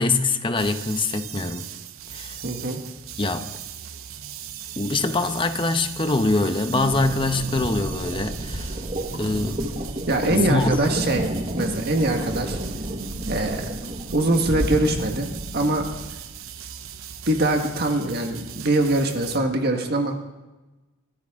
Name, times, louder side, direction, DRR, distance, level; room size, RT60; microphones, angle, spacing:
voice 1, 0.0-1.7 2.1-2.4 3.2-3.5 4.8-8.8 9.1-9.9 10.3-10.8, left 3 dB, 25° left, 8 dB, 0.9 m, -24 dB
sound 1, 0.6-19.4, right 9 dB, 80° right, 0.9 m, -39 dB
voice 2, 2.4-2.8 10.1-11.3 11.5-12.6 13.3-13.7 14.1-15.3 15.5-15.8 17.3-20.2, right 2 dB, 50° right, 4 dB, 1.6 m, -23 dB
sound 2, 6.7-16.2, right 1 dB, 30° right, 1.4 m, -31 dB
25.0 x 13.5 x 3.7 m, 1.1 s
head